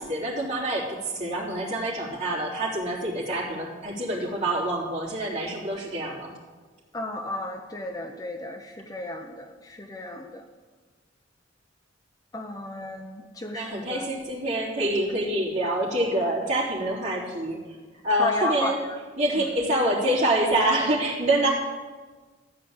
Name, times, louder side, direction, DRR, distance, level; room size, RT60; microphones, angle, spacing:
voice 1, 0.0-6.3 13.5-17.8 18.0-18.8 19.2-21.5, right 1 dB, 35° right, -6 dB, 3.2 m, -26 dB
voice 2, 6.9-10.4 12.3-14.1 18.2-18.8, left 1 dB, 20° left, 4 dB, 0.6 m, -33 dB
13.5 x 5.0 x 8.7 m, 1.3 s
head